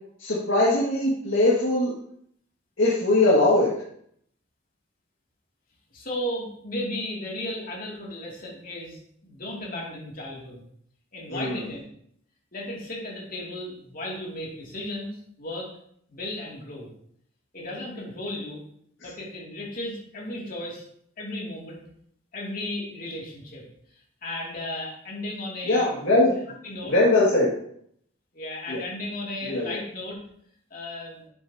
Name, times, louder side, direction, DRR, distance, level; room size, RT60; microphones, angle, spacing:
voice 1, 0.2-1.9 2.8-3.7 11.3-11.6 25.6-26.4 26.9-27.5 28.7-28.8 29.4-29.8, left 2 dB, 70° left, -7 dB, 2.1 m, -21 dB
voice 2, 5.9-10.6 11.1-11.8 12.5-15.7 16.1-16.9 17.5-18.6 19.0-20.8 21.2-21.8 22.3-23.6 24.2-26.0 26.6-26.9 28.3-30.2 30.7-31.3, left 1 dB, 45° left, -3 dB, 2.6 m, -35 dB
10.5 x 7.5 x 2.9 m, 0.67 s
head